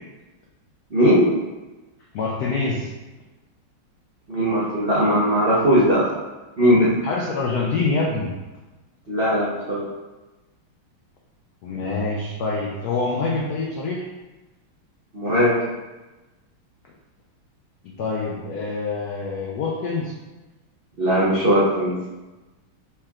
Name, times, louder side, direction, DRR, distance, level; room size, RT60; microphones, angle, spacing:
voice 1, 0.9-1.3 4.3-6.1 6.6-6.9 9.1-9.9 15.1-15.5 21.0-22.0, equal, 90° right, -8 dB, 0.5 m, -19 dB
voice 2, 2.1-2.9 7.0-8.3 11.6-14.1 17.8-20.1, left 3 dB, 85° left, -2 dB, 0.8 m, -25 dB
5.7 x 3.5 x 2.3 m, 1.1 s
omnidirectional pair, 2.3 m